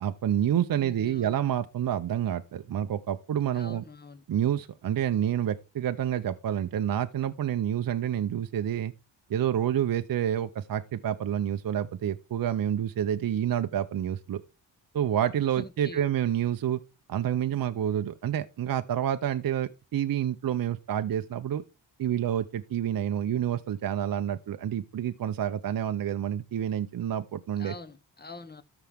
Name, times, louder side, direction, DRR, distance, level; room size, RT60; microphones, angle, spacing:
voice 1, 0.0-3.8 4.3-8.9 9.3-14.4 14.9-16.8 17.1-21.6 22.0-27.7, right 10 dB, 50° right, 0.7 m, -28 dB
voice 2, 0.8-1.4 3.5-4.2 15.6-16.0 27.6-28.6, left 3 dB, 20° left, 1.1 m, -45 dB
13.0 x 4.9 x 3.5 m
cardioid pair, 80°, 46 cm